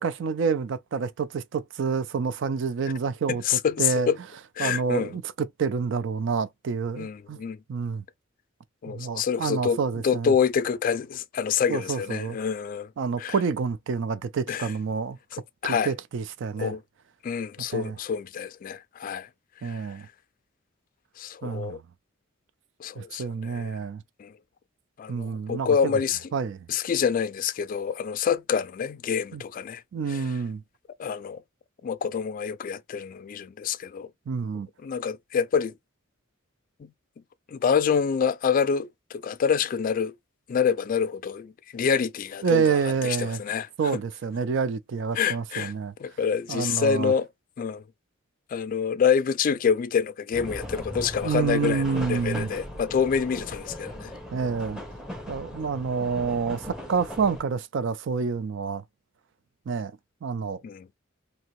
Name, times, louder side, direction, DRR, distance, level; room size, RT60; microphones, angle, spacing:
voice 1, 0.0-4.1 4.6-7.4 7.7-8.0 8.9-10.3 11.7-12.4 13.0-15.2 15.6-16.7 17.6-18.0 19.6-20.1 21.4-21.8 23.0-24.0 25.1-25.8 26.3-26.7 29.3-29.4 29.9-30.6 34.3-34.7 42.4-43.4 43.8-45.9 46.5-47.1 51.2-52.5 54.3-54.8 55.3-58.8 59.7-59.9 60.2-60.6, right 5 dB, 65° right, 0.4 m, -28 dB
voice 2, 3.3-4.2 4.6-5.1 7.0-7.6 8.8-9.8 10.0-12.9 13.2-13.3 14.5-14.7 15.3-15.9 16.6-16.8 17.2-19.3 19.6-19.8 21.2-21.8 22.8-23.8 24.2-24.3 25.0-26.2 26.7-29.8 30.1-30.2 31.0-31.4 31.8-34.1 34.8-35.7 36.8-36.9 37.5-40.1 40.5-43.7 43.9-44.0 45.2-45.7 46.0-47.3 47.6-47.8 48.5-54.1 60.6-60.9, left 7 dB, 45° left, 0.3 m, -27 dB
sound 1, 50.3-57.4, left 1 dB, 5° right, 0.8 m, -38 dB
2.8 x 2.7 x 3.0 m
head